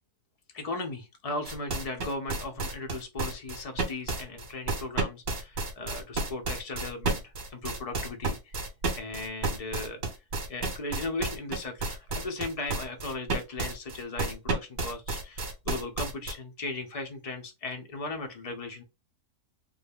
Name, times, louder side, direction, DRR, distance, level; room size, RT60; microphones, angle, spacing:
voice 1, 0.5-8.6 8.9-10.0 10.5-18.8, left 3 dB, 75° left, 0.3 m, -37 dB
sound 1, 1.5-16.3, right 3 dB, 55° right, 1.4 m, -31 dB
3.5 x 2.2 x 3.5 m
omnidirectional pair, 1.7 m